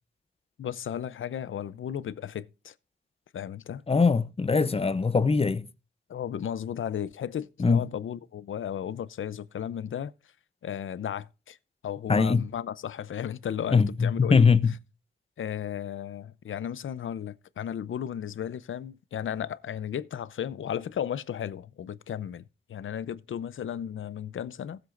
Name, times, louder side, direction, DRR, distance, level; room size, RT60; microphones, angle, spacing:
voice 1, 0.6-2.7 3.3-3.8 6.1-10.1 10.6-11.6 11.8-14.5 15.4-22.4 22.7-24.8, left 9 dB, 75° left, 0.6 m, -34 dB
voice 2, 3.9-5.7 7.6-7.9 12.1-12.5 13.7-14.7, left 5 dB, 30° left, 0.7 m, -22 dB
18.5 x 7.8 x 2.5 m
wide cardioid pair, 95°, 21 cm